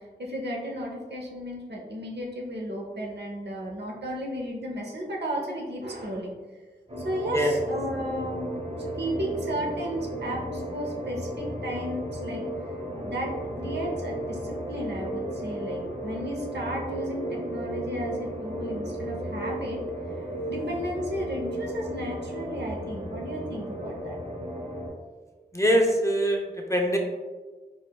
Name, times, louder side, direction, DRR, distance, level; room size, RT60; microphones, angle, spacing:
voice 1, 0.0-6.3 7.0-8.7 9.0-12.4 12.9-13.3 13.6-19.8 20.5-24.2, equal, 75° right, -2 dB, 0.7 m, -34 dB
sound 1, 6.9-24.9, right 1 dB, 40° right, 1.0 m, -34 dB
voice 2, 25.5-26.4 26.7-27.0, equal, 15° left, 1 dB, 0.4 m, -22 dB
4.6 x 2.3 x 2.2 m, 1.3 s
wide cardioid pair, 65°, 18 cm